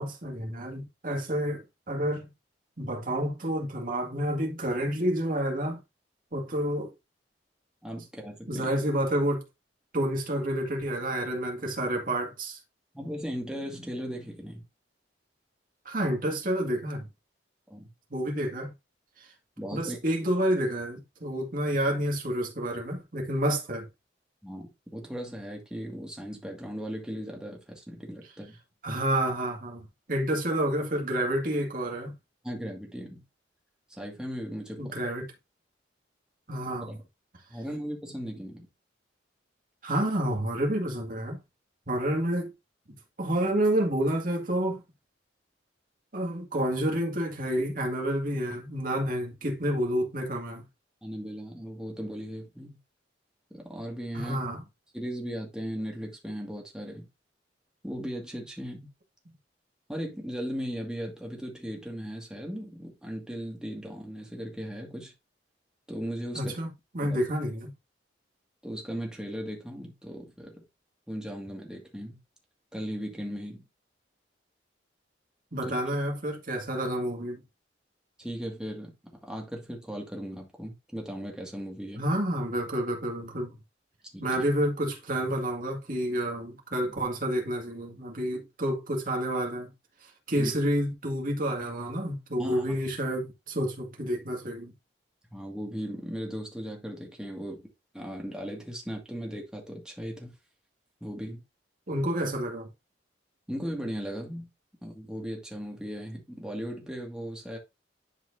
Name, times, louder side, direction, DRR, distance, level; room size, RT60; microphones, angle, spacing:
voice 1, 0.0-2.3 2.8-5.8 6.3-6.9 8.5-9.4 9.9-12.6 15.9-17.1 18.1-18.7 19.7-23.9 28.8-32.2 34.8-35.3 36.5-36.9 39.8-41.4 41.9-42.5 43.2-44.8 46.1-50.6 54.1-54.6 66.3-67.7 75.5-77.4 82.0-83.6 84.2-89.7 90.3-94.7 101.9-102.7, right 1 dB, 50° right, 2.1 m, -29 dB
voice 2, 7.8-8.7 12.9-14.6 17.7-17.9 19.6-20.0 24.4-28.6 32.4-33.2 33.9-35.0 36.9-37.0 37.5-38.7 51.0-52.8 53.5-54.4 54.9-57.1 57.8-58.9 59.9-65.1 65.9-66.6 67.0-67.2 68.6-70.6 71.1-72.2 72.7-73.6 75.6-75.7 78.2-78.9 79.2-82.0 84.1-84.3 86.9-87.0 90.3-90.5 92.4-92.6 95.3-97.6 97.9-100.3 101.0-101.4 103.5-104.5 104.8-107.6, equal, 5° right, 2.0 m, -37 dB
11.0 x 4.6 x 2.7 m
head